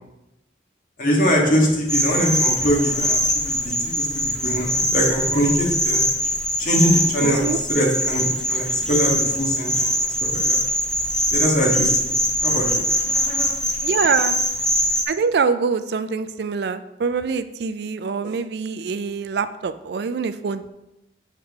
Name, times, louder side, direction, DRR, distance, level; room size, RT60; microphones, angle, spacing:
voice 1, 1.0-6.0 6.6-9.9 10.2-10.6 11.3-12.8, equal, 45° left, -2 dB, 1.7 m, -22 dB
sound 1, 1.9-15.0, equal, 5° left, 0.7 m, -22 dB
voice 2, 7.2-7.6 13.8-14.4 15.1-20.6, right 5 dB, 65° right, 12 dB, 0.3 m, -24 dB
8.1 x 4.7 x 3.6 m, 0.93 s
head